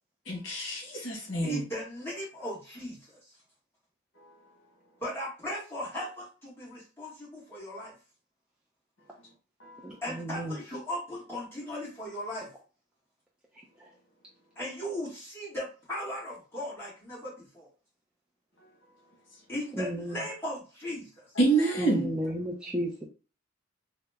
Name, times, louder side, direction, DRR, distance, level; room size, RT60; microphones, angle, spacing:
voice 1, 0.3-1.6 4.2-4.3 9.6-9.8 21.3-22.1, right 3 dB, 65° left, -1 dB, 1.2 m, -27 dB
voice 2, 1.4-3.1 5.0-7.9 10.0-12.5 14.5-17.7 19.5-21.3, left 1 dB, 10° left, -8 dB, 1.3 m, -37 dB
voice 3, 9.8-10.6 19.7-20.2 21.8-22.9, equal, 5° right, -4 dB, 0.4 m, -33 dB
2.8 x 2.1 x 3.3 m, 0.35 s
head